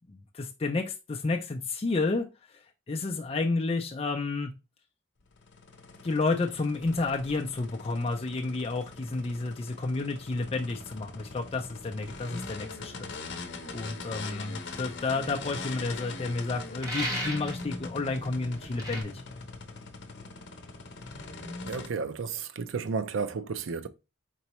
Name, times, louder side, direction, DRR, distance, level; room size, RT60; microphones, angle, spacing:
voice 1, 0.1-2.3 2.5-4.5 6.0-13.1 13.7-19.2, left 3 dB, 30° left, 0.4 m, -31 dB
sound 1, 5.3-21.9, left 3 dB, 55° left, 0.7 m, -42 dB
sound 2, 16.8-17.6 18.8-19.0, equal, 15° right, 1.1 m, -33 dB
voice 2, 21.6-23.9, right 5 dB, 70° right, 0.5 m, -32 dB
4.5 x 3.9 x 3.0 m
head